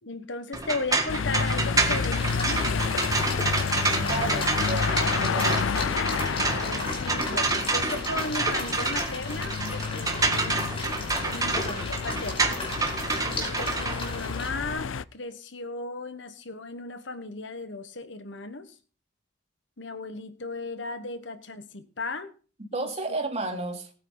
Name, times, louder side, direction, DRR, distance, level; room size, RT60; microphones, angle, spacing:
voice 1, 0.0-2.9 4.1-4.4 6.4-10.6 11.2-12.5 13.2-18.8 19.8-22.3 22.7-22.9, left 3 dB, 65° left, 10 dB, 1.4 m, -36 dB
sound 1, 0.5-14.7, right 3 dB, 20° right, 1.8 m, -28 dB
sound 2, 1.1-15.0, left 5 dB, 90° left, 0.5 m, -30 dB
sound 3, 2.2-14.5, left 2 dB, 30° left, 5.2 m, -37 dB
voice 2, 4.0-6.0 22.7-23.9, right 3 dB, 35° right, 2 dB, 3.2 m, -33 dB
19.5 x 9.4 x 4.0 m, 0.39 s
head